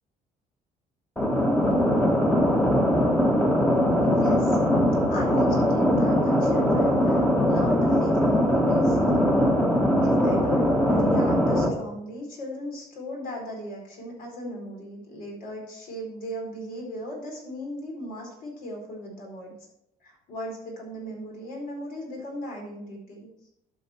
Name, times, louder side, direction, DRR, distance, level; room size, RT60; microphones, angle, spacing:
sound 1, 1.2-11.7, equal, 10° left, 1.3 m, -21 dB
voice 1, 4.0-4.6 5.1-9.2 10.0-19.5 20.0-23.3, equal, 70° left, 0 dB, 4.5 m, -37 dB
12.0 x 6.4 x 4.4 m, 0.80 s
cardioid pair, 155°, 16 cm